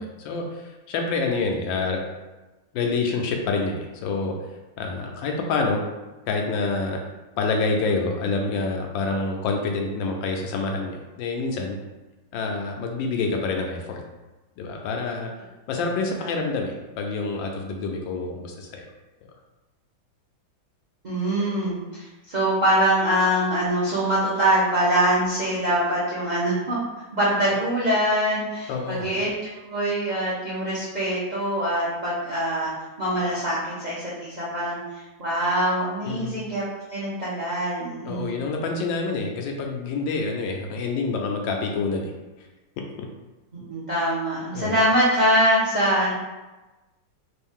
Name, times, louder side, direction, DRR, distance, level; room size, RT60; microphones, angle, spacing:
voice 1, 0.0-2.0 2.7-4.3 4.8-5.8 6.3-7.0 7.4-11.8 12.3-14.0 14.6-15.3 15.7-18.9 28.7-29.1 36.0-36.3 38.0-42.1 42.8-43.1 44.5-44.8, left 3 dB, 80° left, 2 dB, 1.3 m, -27 dB
voice 2, 21.0-26.8 27.1-32.7 33.0-36.6 36.9-38.3 43.5-46.1, right 1 dB, 85° right, -7 dB, 0.3 m, -24 dB
3.7 x 2.6 x 3.6 m, 1.1 s
omnidirectional pair, 2.0 m